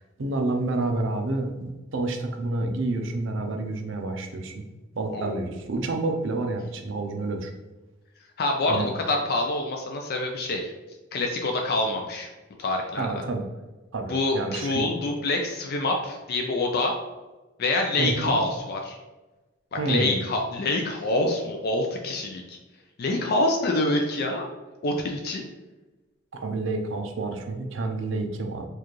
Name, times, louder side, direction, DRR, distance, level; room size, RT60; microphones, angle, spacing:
voice 1, 0.2-4.6 4.9-7.5 8.7-8.9 13.0-13.4 13.9-14.9 18.0-18.4 19.8-20.2 26.3-28.7, right 2 dB, 65° right, 4 dB, 0.6 m, -29 dB
voice 2, 5.1-5.4 8.4-10.7 11.1-12.3 12.6-13.1 14.1-17.0 17.6-19.0 19.9-22.6 23.0-24.5 24.8-25.4, left 2 dB, 50° left, 2 dB, 0.4 m, -26 dB
4.7 x 2.4 x 3.0 m, 1.1 s
head